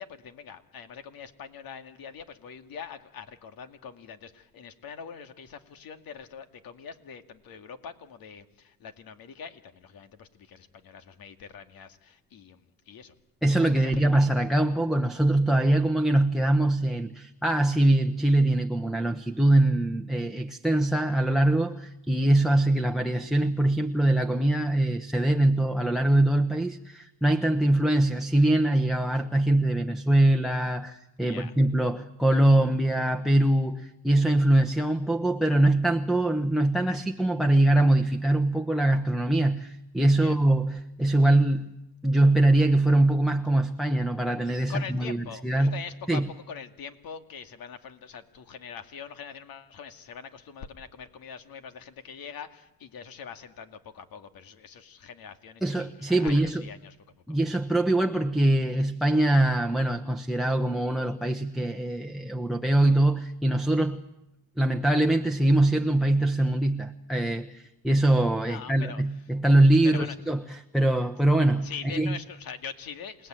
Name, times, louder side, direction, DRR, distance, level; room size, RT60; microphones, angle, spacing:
voice 1, 0.0-13.1 13.7-14.1 31.3-31.5 40.2-40.4 44.7-57.0 57.3-57.4 68.4-69.0 69.8-70.1 71.6-73.3, left 7 dB, 60° left, 8 dB, 2.4 m, -43 dB
voice 2, 13.4-41.8 42.0-45.2 45.4-45.8 46.1-46.3 55.6-56.6 57.3-64.0 64.6-72.1, right 1 dB, ahead, 10 dB, 1.1 m, -23 dB
28.5 x 18.5 x 9.1 m, 0.89 s
cardioid pair, 90°, 39 cm